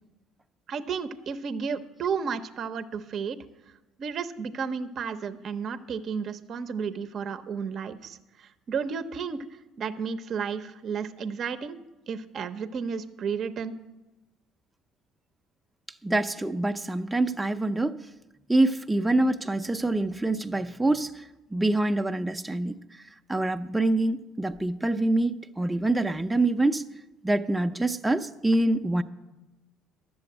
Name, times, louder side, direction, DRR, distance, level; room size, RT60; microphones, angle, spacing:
voice 1, 0.7-3.4 4.0-8.2 8.7-9.4 9.8-11.8 12.1-13.7, right 6 dB, 50° right, 10 dB, 0.7 m, -32 dB
voice 2, 16.0-18.0 18.5-21.1 21.5-22.7 23.3-26.8 27.2-29.0, right 2 dB, 10° right, 6 dB, 0.6 m, -25 dB
11.5 x 7.0 x 7.9 m, 1.0 s
supercardioid pair, 70°, 0 cm